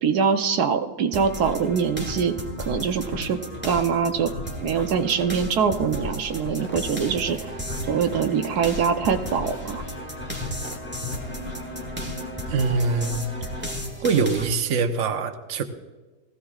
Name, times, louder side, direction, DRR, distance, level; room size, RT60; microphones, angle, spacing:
voice 1, 0.0-3.4 3.6-4.3 4.6-7.5 7.9-9.8, right 6 dB, 90° right, 6 dB, 1.4 m, -23 dB
sound 1, 1.1-14.5, left 1 dB, 5° right, 1.5 m, -34 dB
sound 2, 6.6-13.7, equal, 10° left, 0.9 m, -40 dB
voice 2, 12.5-13.3 14.0-15.6, right 4 dB, 55° right, 6 dB, 1.2 m, -23 dB
19.0 x 15.5 x 2.4 m, 1.2 s
omnidirectional pair, 1.6 m